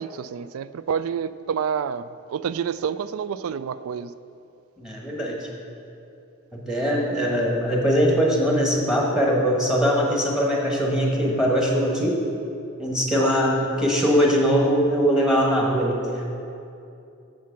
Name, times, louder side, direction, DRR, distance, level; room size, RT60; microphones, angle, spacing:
voice 1, 0.0-4.1 13.2-13.7, right 7 dB, 75° right, 15 dB, 0.3 m, -29 dB
voice 2, 4.8-5.4 6.5-12.2 12.8-16.0, equal, 5° right, -2 dB, 1.2 m, -21 dB
7.6 x 7.0 x 5.8 m, 2.7 s
head